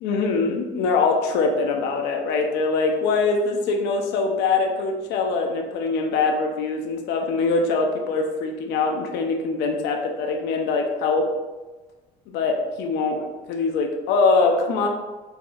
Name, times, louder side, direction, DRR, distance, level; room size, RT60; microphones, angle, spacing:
voice 1, 0.0-11.3 12.3-14.9, left 4 dB, 85° left, 3 dB, 0.5 m, -23 dB
4.6 x 2.3 x 2.5 m, 1.2 s
cardioid pair, 110°, 17 cm